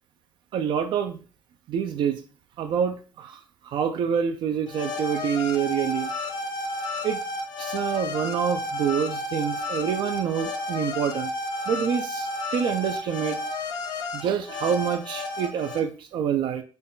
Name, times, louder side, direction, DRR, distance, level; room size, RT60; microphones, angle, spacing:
voice 1, 0.5-1.2 1.7-2.2 2.6-3.4 3.7-6.1 7.0-7.2 7.6-11.3 11.7-13.4 14.1-16.6, right 8 dB, 60° right, 7 dB, 0.4 m, -27 dB
sound 1, 4.7-15.8, left 2 dB, 50° left, 0.6 m, -32 dB
3.9 x 2.2 x 3.7 m, 0.36 s
cardioid pair, 155°, 9 cm